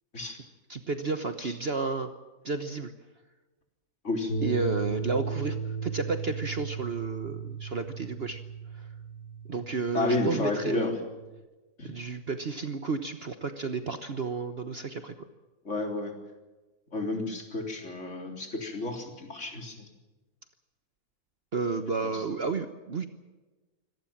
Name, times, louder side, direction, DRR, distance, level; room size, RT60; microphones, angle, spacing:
voice 1, 0.7-2.1 2.4-2.9 4.4-8.4 9.5-10.9 11.8-15.1 21.5-23.1, right 4 dB, 45° right, 9 dB, 1.3 m, -32 dB
sound 1, 4.3-11.4, right 5 dB, 70° left, 2.4 m, -36 dB
voice 2, 9.9-10.9 11.8-11.9 15.7-16.1 16.9-19.9 22.0-22.2, left 2 dB, 50° left, 3 dB, 4.0 m, -31 dB
25.5 x 18.0 x 7.4 m, 1.2 s
omnidirectional pair, 1.6 m